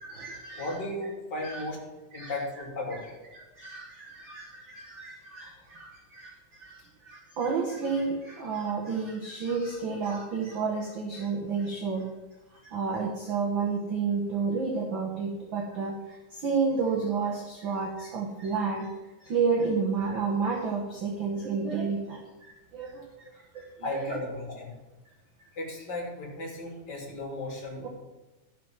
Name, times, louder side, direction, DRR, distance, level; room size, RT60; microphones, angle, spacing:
voice 1, 0.0-0.7 1.4-1.6 2.1-2.3 3.3-6.8 7.0-12.1 12.6-18.9 19.2-23.0 23.5-24.2 27.8-27.9, right 5 dB, 60° right, -1 dB, 1.3 m, -31 dB
voice 2, 0.5-1.8 2.1-3.1 23.8-24.7 25.6-27.9, left 2 dB, 30° left, -2 dB, 3.0 m, -35 dB
13.0 x 6.1 x 6.0 m, 1.1 s
omnidirectional pair, 3.9 m